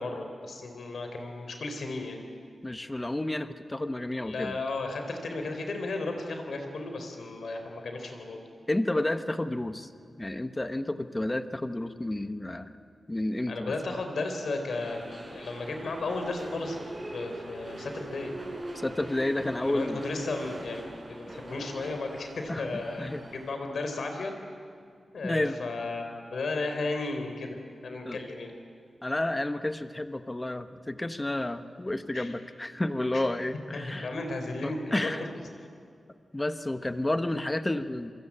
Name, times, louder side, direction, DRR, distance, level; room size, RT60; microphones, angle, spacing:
voice 1, 0.0-2.2 4.1-8.5 13.5-18.3 19.6-24.3 25.1-28.5 32.1-32.3 33.1-33.2 33.7-35.1, left 3 dB, 70° left, 5 dB, 4.3 m, -34 dB
voice 2, 2.6-4.6 8.7-9.9 10.2-12.7 13.1-13.7 18.8-20.0 22.5-22.6 23.0-23.2 25.2-25.6 28.0-28.2 29.0-34.1 34.6-35.3 36.3-38.1, left 1 dB, 15° left, 9 dB, 1.1 m, -31 dB
sound 1, 14.7-23.5, right 1 dB, 25° right, 5.3 m, -42 dB
27.0 x 24.5 x 8.8 m, 2.2 s
wide cardioid pair, 160°, 0 cm